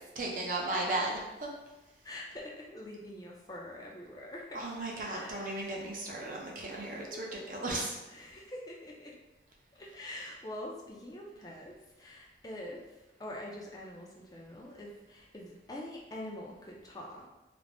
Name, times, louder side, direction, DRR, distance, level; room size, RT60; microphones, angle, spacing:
voice 1, 0.2-1.2 4.5-8.0, right 2 dB, 45° right, -1 dB, 0.5 m, -35 dB
voice 2, 2.0-4.6 5.0-5.7 7.0-7.3 8.1-9.1 9.7-12.8 13.2-17.2, left 1 dB, 20° left, -2 dB, 0.4 m, -45 dB
2.5 x 2.0 x 3.3 m, 1.0 s
head